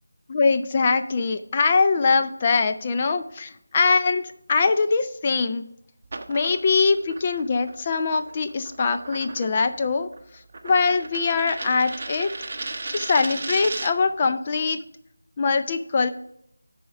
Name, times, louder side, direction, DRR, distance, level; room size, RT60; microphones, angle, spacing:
voice 1, 0.3-5.7 6.3-10.1 10.6-12.3 12.9-14.8 15.4-16.1, left 4 dB, 25° left, 7 dB, 0.4 m, -22 dB
sound 1, 6.0-14.1, right 3 dB, 35° right, 0.7 m, -36 dB
11.0 x 4.2 x 5.1 m, 0.72 s
figure-of-eight pair, 165°, 0 cm